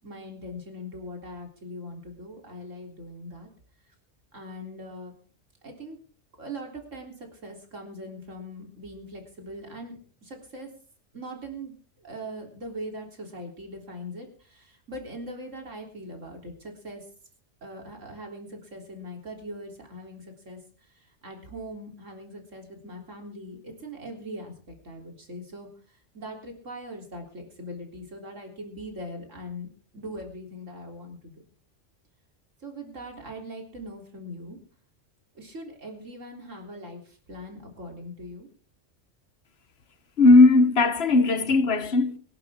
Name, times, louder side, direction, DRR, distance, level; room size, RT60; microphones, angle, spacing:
voice 1, 0.0-3.5 4.3-5.1 5.6-6.0 6.4-10.7 11.1-17.0 17.6-31.4 32.6-34.6 35.3-38.5, equal, 85° right, 4.0 m, -41 dB
voice 2, 40.2-42.2, left 3 dB, 55° left, 1.4 m, -17 dB
24.0 x 11.5 x 3.7 m
omnidirectional pair, 1.3 m